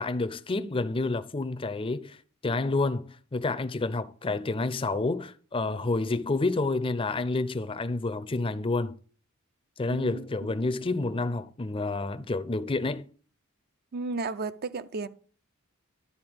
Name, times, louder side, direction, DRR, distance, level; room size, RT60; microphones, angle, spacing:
voice 1, 0.0-2.2 2.4-9.0 9.8-13.0, left 3 dB, 25° left, 0.5 m, -29 dB
voice 2, 9.9-10.3 13.9-15.1, right 3 dB, 45° right, 0.5 m, -33 dB
11.5 x 4.2 x 7.8 m
head